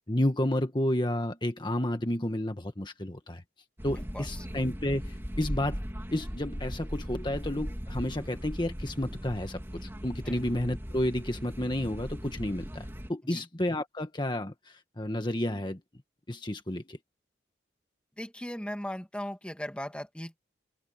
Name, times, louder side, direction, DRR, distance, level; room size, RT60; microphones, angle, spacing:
voice 1, 0.0-3.4 3.8-5.8 6.1-15.8 16.3-17.0, left 1 dB, 25° left, 1.6 m, -31 dB
sound 1, 3.8-13.1, equal, 15° right, 2.8 m, -38 dB
voice 2, 4.1-4.5 10.3-10.4 13.2-13.4 18.2-20.4, equal, 5° left, 2.2 m, -38 dB
head